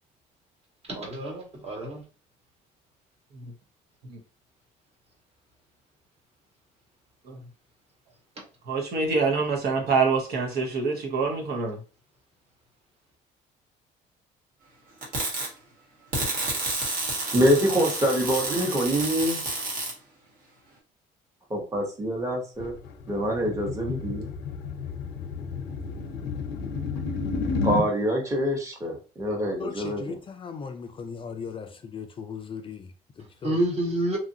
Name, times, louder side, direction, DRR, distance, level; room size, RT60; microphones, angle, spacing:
voice 1, 0.9-2.0 33.4-34.2, right 1 dB, 35° right, 1.2 m, -28 dB
voice 2, 8.7-11.8, right 4 dB, 70° right, 1.0 m, -26 dB
sound 1, 15.0-15.5 16.1-19.9, right 2 dB, 55° right, 1.4 m, -30 dB
voice 3, 17.3-19.4 21.5-22.8 23.1-24.3 27.6-30.1, equal, 20° right, 1.0 m, -25 dB
sound 2, 22.6-27.9, left 5 dB, 80° left, 0.6 m, -31 dB
voice 4, 29.6-33.6, left 6 dB, 30° left, 0.4 m, -38 dB
2.9 x 2.4 x 2.7 m
cardioid pair, 110°, 17 cm